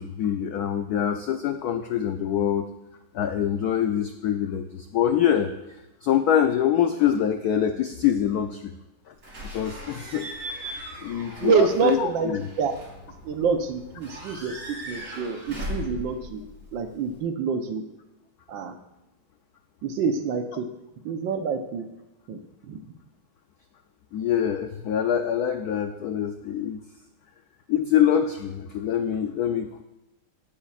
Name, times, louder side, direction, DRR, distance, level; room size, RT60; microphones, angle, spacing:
voice 1, 0.0-2.7 3.1-5.5 6.0-8.7 9.1-9.2 9.4-10.3 10.6-10.7 11.0-12.5 24.1-26.8 27.7-29.8, left 9 dB, 85° left, 7 dB, 0.8 m, -25 dB
Slam / Squeak / Alarm, 9.2-17.2, equal, 55° right, 4.7 m, -39 dB
voice 2, 11.4-12.7 13.2-16.4 16.7-17.8 18.5-18.7 19.8-20.7 21.0-21.9 22.3-22.4 22.6-22.8, right 5 dB, 70° right, 7 dB, 1.4 m, -26 dB
16.5 x 8.5 x 2.4 m, 0.97 s
omnidirectional pair, 2.3 m